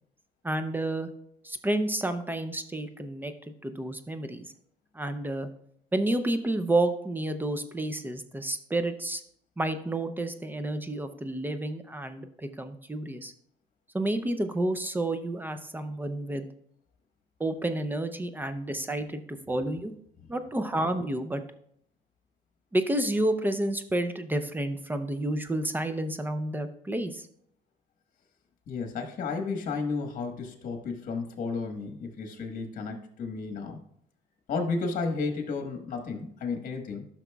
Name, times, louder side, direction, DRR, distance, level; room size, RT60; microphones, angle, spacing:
voice 1, 0.4-1.1 1.4-3.3 3.6-4.5 4.9-5.5 5.9-9.2 9.6-13.3 13.9-16.5 17.4-19.9 20.3-21.4 22.7-27.3, right 1 dB, 10° right, 9 dB, 0.5 m, -30 dB
voice 2, 28.7-33.8 34.5-37.1, left 4 dB, 50° left, 4 dB, 1.3 m, -33 dB
12.0 x 6.0 x 2.3 m, 0.67 s
cardioid pair, 110°, 17 cm